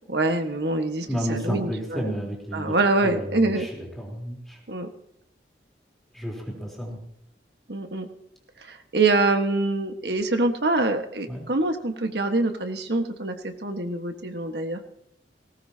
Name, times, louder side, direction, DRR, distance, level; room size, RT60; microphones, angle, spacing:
voice 1, 0.1-2.1 2.5-3.7 4.7-4.9 7.7-8.1 8.7-14.8, right 2 dB, 70° right, 6 dB, 1.6 m, -25 dB
voice 2, 1.1-2.7 3.0-4.6 6.1-7.0 11.3-11.4, equal, ahead, -2 dB, 3.9 m, -31 dB
19.0 x 18.5 x 2.9 m, 0.73 s
head